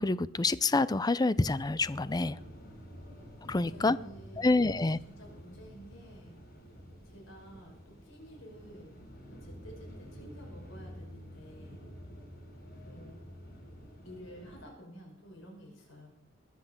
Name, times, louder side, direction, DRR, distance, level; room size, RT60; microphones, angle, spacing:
voice 1, 0.0-2.4 3.4-4.0 4.4-5.0, left 3 dB, 20° left, 17 dB, 0.5 m, -27 dB
sound 1, 1.4-14.6, equal, 50° left, 6.1 m, -49 dB
voice 2, 3.5-4.7 5.0-6.3 7.0-9.0 9.3-11.8 12.8-13.3 14.0-16.1, equal, 70° left, -1 dB, 5.9 m, -51 dB
21.5 x 8.4 x 7.4 m, 0.82 s
head